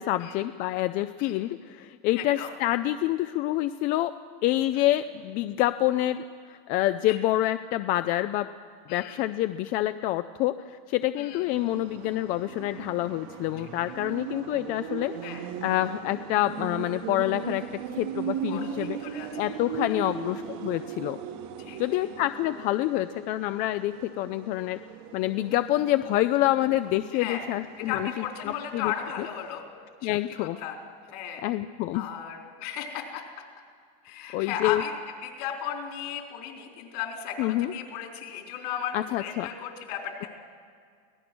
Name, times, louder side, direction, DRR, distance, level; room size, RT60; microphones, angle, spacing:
voice 1, 0.0-4.1 4.4-8.5 8.9-15.1 15.6-17.6 18.0-19.0 19.4-21.2 21.8-24.8 25.1-28.9 29.2-29.3 30.0-30.6 31.4-32.1 34.3-34.8 37.4-37.7 38.9-39.5, left 15 dB, 40° left, 11 dB, 0.5 m, -27 dB
voice 2, 2.2-2.5 4.7-4.9 7.1-7.2 8.9-9.2 11.2-11.4 15.2-15.4 18.5-19.5 19.8-20.0 21.6-21.8 27.1-27.5 27.8-29.6 30.0-30.8 31.1-31.5 31.9-33.2 34.0-34.9 35.2-40.3, left 9 dB, 75° left, 2 dB, 4.1 m, -35 dB
sound 1, 11.5-29.6, right 8 dB, 60° right, 1.6 m, -39 dB
24.5 x 17.5 x 6.2 m, 2.1 s
cardioid pair, 165°, 20 cm